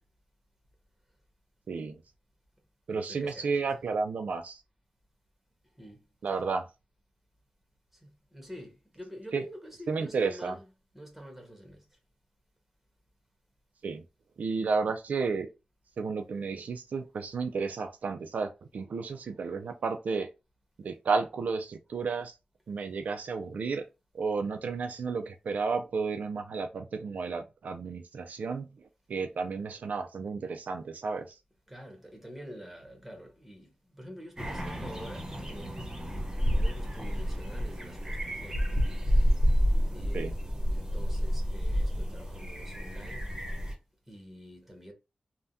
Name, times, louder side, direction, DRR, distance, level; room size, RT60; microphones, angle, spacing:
voice 1, 1.7-2.0 2.9-4.6 6.2-6.7 9.3-9.4 9.9-10.5 13.8-14.0 14.4-15.5 16.0-20.3 20.8-22.4 22.7-23.8 24.1-31.4 40.1-40.3, right 4 dB, 80° right, 0.4 m, -32 dB
voice 2, 2.9-3.7 5.8-6.0 7.9-10.7 10.9-11.8 31.7-36.0 36.4-38.7 39.9-40.4 40.7-43.3 44.1-44.9, equal, 5° right, 1.2 m, -47 dB
sound 1, 34.4-43.7, equal, 25° right, 0.9 m, -29 dB
3.4 x 2.2 x 2.6 m
wide cardioid pair, 95°, 3 cm